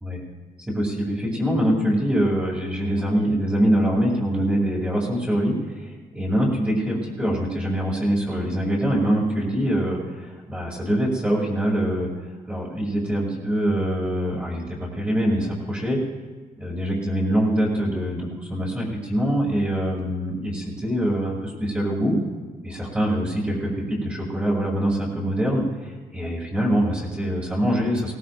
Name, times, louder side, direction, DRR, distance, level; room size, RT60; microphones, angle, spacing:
voice 1, 0.7-12.1 12.5-16.0 16.6-22.2 22.6-28.2, equal, 10° right, -6 dB, 2.5 m, -24 dB
18.5 x 18.0 x 2.6 m, 1.4 s
cardioid pair, 140°, 15 cm